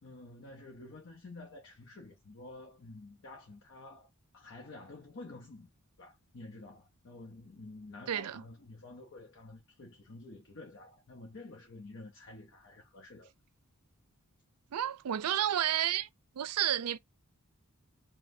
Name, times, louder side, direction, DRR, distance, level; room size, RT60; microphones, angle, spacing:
voice 1, 0.0-5.7 6.0-13.3, left 2 dB, 55° left, 0.8 m, -50 dB
voice 2, 8.1-8.4 14.7-16.1 16.4-17.0, right 11 dB, 85° right, 0.4 m, -31 dB
5.1 x 2.2 x 2.7 m
head